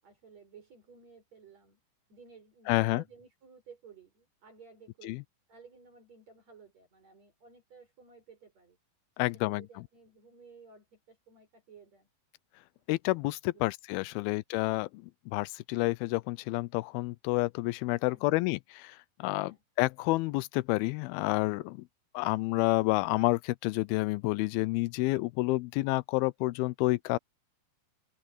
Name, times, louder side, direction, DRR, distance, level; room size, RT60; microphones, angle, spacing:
voice 1, 0.0-1.8 2.1-5.2 5.5-8.8 9.1-12.1 13.5-13.6 14.1-14.4 18.1-18.4 19.4-19.6, right 5 dB, 45° right, 7.1 m, -55 dB
voice 2, 2.7-3.0 5.0-5.2 9.2-9.6 12.9-21.8 22.1-27.2, left 21 dB, 90° left, 2.5 m, -29 dB
omnidirectional pair, 4.2 m